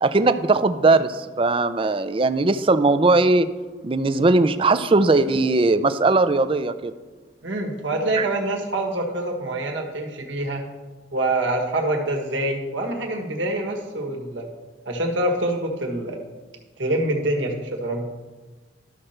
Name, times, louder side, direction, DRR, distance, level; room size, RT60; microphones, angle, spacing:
voice 1, 0.0-3.5 3.8-6.9 8.2-8.3, right 3 dB, 30° right, 12 dB, 0.4 m, -19 dB
voice 2, 7.4-10.7 11.1-14.5 14.8-16.2 16.8-18.1, right 1 dB, 75° right, 1 dB, 1.6 m, -25 dB
12.5 x 4.4 x 6.5 m, 1.3 s
head